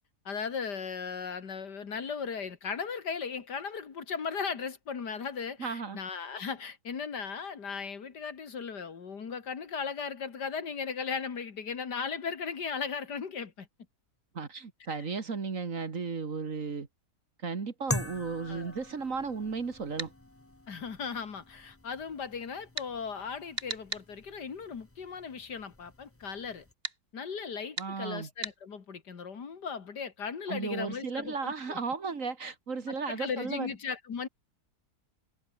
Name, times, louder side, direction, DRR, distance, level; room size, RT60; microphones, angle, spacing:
voice 1, 0.3-13.7 14.9-15.0 18.5-18.7 20.7-26.6 27.1-31.8 32.9-34.3, left 6 dB, 90° left, 2.7 m, -37 dB
voice 2, 5.6-6.0 14.3-16.9 17.4-20.1 27.8-28.3 30.5-33.7, right 4 dB, 50° right, 2.3 m, -35 dB
sound 1, 17.9-26.7, left 2 dB, 10° left, 0.8 m, -43 dB
sound 2, 20.0-20.1 22.8-22.9 23.6-24.1 26.8-27.0 27.8-27.9 28.4-28.6, right 3 dB, 35° right, 2.6 m, -36 dB
omnidirectional pair, 1.7 m